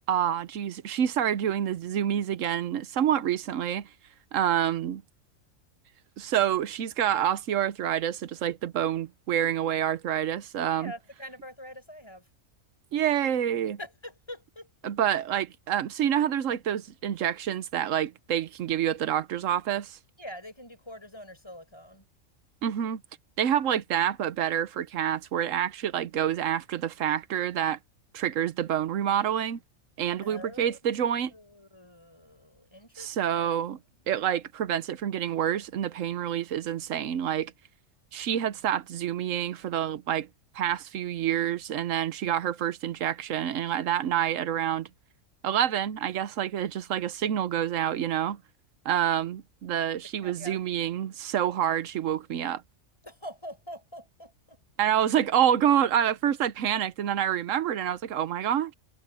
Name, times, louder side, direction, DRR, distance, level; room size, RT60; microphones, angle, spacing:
voice 1, 0.1-3.9 4.3-5.0 6.2-10.9 12.9-13.8 14.8-20.0 22.6-23.0 23.4-27.8 28.1-29.6 30.0-31.3 33.0-33.8 34.1-37.5 38.1-40.3 40.5-44.9 45.4-48.4 48.8-52.6 54.8-58.7, right 10 dB, 70° right, 1.1 m, -27 dB
voice 2, 10.8-12.2 13.8-14.9 20.2-22.0 30.2-30.8 31.3-33.8 50.2-50.6 53.0-54.6, equal, 20° left, 4.8 m, -45 dB
omnidirectional pair, 1.4 m